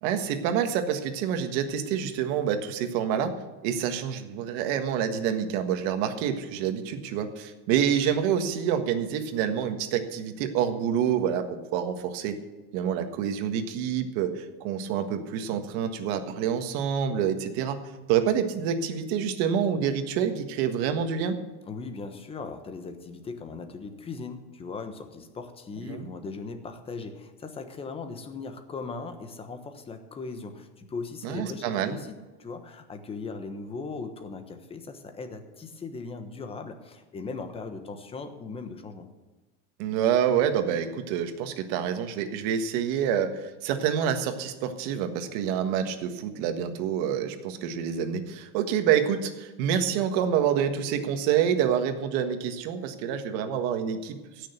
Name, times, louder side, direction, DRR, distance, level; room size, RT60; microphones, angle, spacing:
voice 1, 0.0-3.4 3.6-12.4 12.7-17.8 18.1-21.4 25.9-26.1 31.2-32.0 39.8-54.5, right 8 dB, 55° right, 7 dB, 1.6 m, -27 dB
voice 2, 21.6-39.1, left 4 dB, 15° left, 7 dB, 1.2 m, -39 dB
16.0 x 6.7 x 8.1 m, 1.2 s
supercardioid pair, 160°, 36 cm